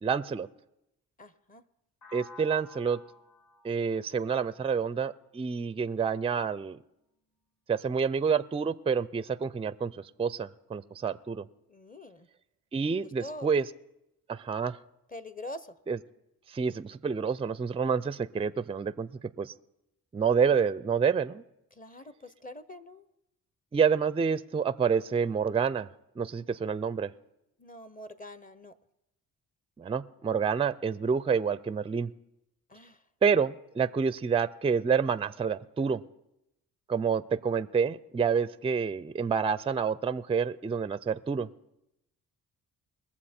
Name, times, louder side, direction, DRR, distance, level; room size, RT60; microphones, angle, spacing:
voice 1, 0.0-0.5 2.1-3.0 3.6-6.8 7.7-9.9 10.2-11.4 12.7-13.6 14.3-14.8 15.9-16.0 16.5-19.1 19.4-19.5 20.1-21.4 23.7-25.9 26.2-27.1 29.8-32.1 33.2-36.0 36.9-41.5, right 6 dB, 15° right, 17 dB, 0.4 m, -28 dB
voice 2, 1.2-1.6 11.7-12.3 13.0-13.6 15.1-15.7 21.7-23.1 27.6-28.7 32.7-33.0, left 1 dB, 25° left, 14 dB, 0.8 m, -44 dB
sound 1, 2.0-5.9, left 3 dB, 45° left, 2.0 m, -53 dB
21.5 x 7.2 x 4.3 m, 0.88 s
cardioid pair, 65°, 36 cm